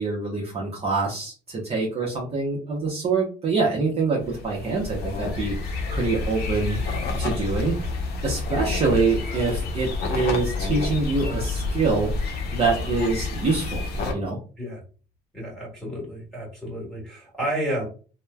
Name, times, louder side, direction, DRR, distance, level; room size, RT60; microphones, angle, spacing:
voice 1, 0.0-6.8 7.2-7.9 8.2-13.8 14.1-14.4, right 4 dB, 35° right, -3 dB, 0.7 m, -25 dB
sound 1, 4.2-14.1, left 3 dB, 70° left, 0.7 m, -29 dB
voice 2, 15.3-17.9, right 1 dB, 5° left, -2 dB, 1.5 m, -31 dB
3.0 x 2.1 x 2.2 m, 0.37 s
cardioid pair, 110°, 17 cm